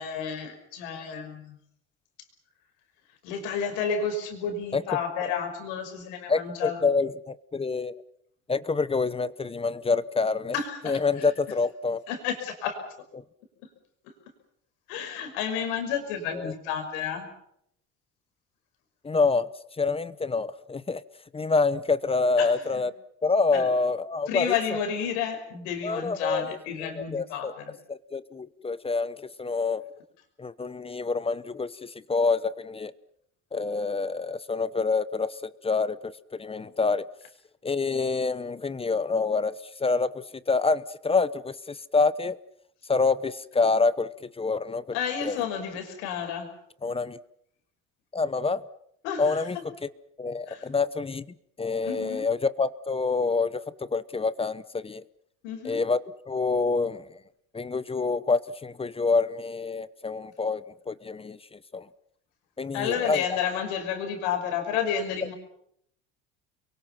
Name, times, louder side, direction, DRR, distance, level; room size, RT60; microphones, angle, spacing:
voice 1, 0.0-1.6 3.2-6.8 10.5-11.3 12.1-12.8 14.9-17.3 22.4-22.8 23.5-23.7 24.3-27.7 44.9-46.5 49.0-49.4 50.5-50.7 51.8-52.2 55.4-55.8 62.7-65.3, left 7 dB, 90° left, 5 dB, 5.9 m, -31 dB
voice 2, 6.3-7.9 8.5-10.6 10.8-12.0 16.3-16.5 19.0-19.5 19.8-21.0 21.3-22.9 23.2-24.6 25.8-26.4 26.8-27.5 27.9-29.9 30.4-32.9 33.5-37.1 37.6-39.5 39.8-42.4 42.9-44.9 45.2-45.4 46.8-47.2 48.1-48.7 49.2-49.6 49.8-49.9 50.2-51.3 51.6-55.0 55.6-56.0 56.3-57.2 57.5-61.9 62.6-63.3, left 4 dB, 15° left, 16 dB, 0.9 m, -27 dB
29.0 x 23.0 x 5.9 m, 0.71 s
cardioid pair, 110°, 33 cm